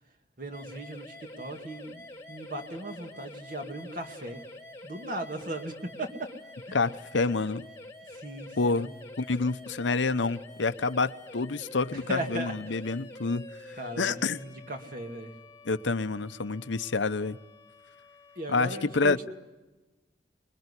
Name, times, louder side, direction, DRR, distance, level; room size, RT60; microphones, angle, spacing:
voice 1, 0.4-4.4 4.8-6.3 6.7-6.8 8.1-8.9 11.9-12.9 13.8-15.3 18.4-19.2, right 1 dB, 45° right, 2.3 m, -37 dB
sound 1, 0.5-19.2, left 2 dB, 15° left, 1.7 m, -48 dB
voice 2, 6.7-7.7 8.6-8.9 9.2-14.4 15.7-17.4 18.5-19.2, left 3 dB, 85° left, 0.8 m, -28 dB
26.0 x 21.5 x 9.8 m
head